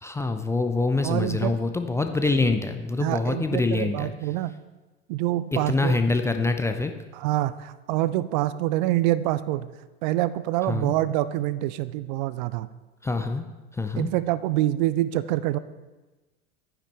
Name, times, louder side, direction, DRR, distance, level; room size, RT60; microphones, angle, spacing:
voice 1, 0.0-4.1 5.5-6.9 10.7-10.9 13.0-13.4 13.7-14.1, left 3 dB, 10° left, 7 dB, 0.5 m, -25 dB
voice 2, 1.0-1.5 3.0-4.5 5.1-6.0 7.2-9.7 10.0-12.7 14.0-15.6, right 15 dB, 45° right, 16 dB, 0.5 m, -26 dB
11.0 x 9.9 x 3.3 m, 1.2 s
figure-of-eight pair, 75°, 32 cm